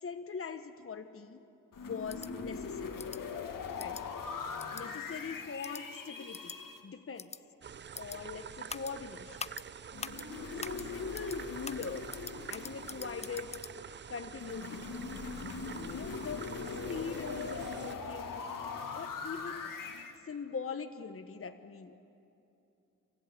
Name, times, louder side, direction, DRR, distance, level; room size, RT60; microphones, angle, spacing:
voice 1, 0.0-1.4 1.8-3.0 3.8-4.0 4.7-6.5 6.8-7.3 7.9-9.4 10.5-12.1 12.5-13.6 14.1-14.8 15.9-16.5 16.9-18.4 18.9-19.7 20.2-21.9, left 5 dB, 40° left, 8 dB, 1.2 m, -42 dB
sound 1, 1.7-6.8 9.9-13.7 14.4-20.2, left 5 dB, 70° left, 2.0 m, -41 dB
sound 2, 2.1-2.3 3.0-3.2 3.8-4.0 4.6-4.8 5.6-5.8 6.3-6.6 7.2-7.4 7.9-8.2 8.7-8.9 9.4-9.6 10.0-10.2 10.6-10.8 11.1-11.4 11.6-13.7, left 5 dB, 20° left, 0.4 m, -43 dB
sound 3, 7.6-17.9, right 7 dB, 35° right, 0.5 m, -47 dB
27.0 x 14.0 x 8.5 m, 2.8 s
supercardioid pair, 50°, 34 cm